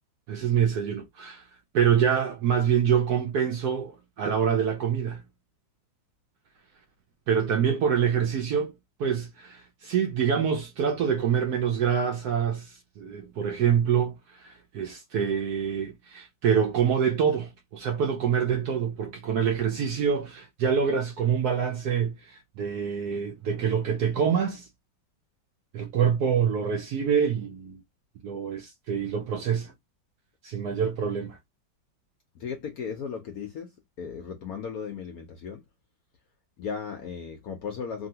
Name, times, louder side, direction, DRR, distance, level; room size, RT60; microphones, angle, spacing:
voice 1, 0.3-1.4 1.7-5.2 7.3-8.7 9.0-24.7 25.7-27.8 28.2-29.7 30.4-31.4, right 7 dB, 75° right, 0.9 m, -26 dB
voice 2, 32.3-33.7 34.0-35.6 36.6-38.1, left 6 dB, 70° left, 0.9 m, -36 dB
2.9 x 2.7 x 2.7 m
omnidirectional pair, 2.1 m